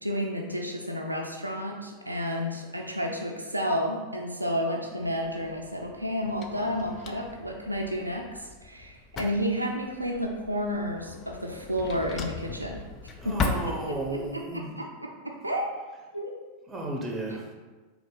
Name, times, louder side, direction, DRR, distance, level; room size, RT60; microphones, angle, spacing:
voice 1, 0.0-12.8 13.2-13.7 14.3-15.1 15.4-15.7 16.1-16.3 16.7-16.8, equal, 85° right, 1 dB, 0.4 m, -31 dB
Drawer open or close, 5.0-14.3, left 4 dB, 30° left, 0.4 m, -38 dB
voice 2, 13.2-14.7 16.7-17.5, right 1 dB, 15° right, 0 dB, 0.9 m, -33 dB
3.8 x 2.9 x 3.9 m, 1.3 s
figure-of-eight pair, 90°, 0 cm